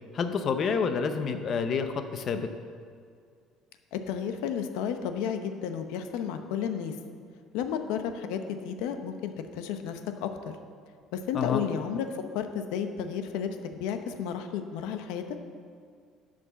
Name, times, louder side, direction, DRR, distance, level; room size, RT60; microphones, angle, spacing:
voice 1, 0.1-2.5 11.3-11.6, left 6 dB, 35° left, 8 dB, 0.6 m, -28 dB
voice 2, 3.9-6.9 7.5-10.3 11.1-15.2, left 8 dB, 90° left, 7 dB, 0.8 m, -32 dB
11.0 x 5.2 x 6.9 m, 2.2 s
cardioid pair, 175°, 0 cm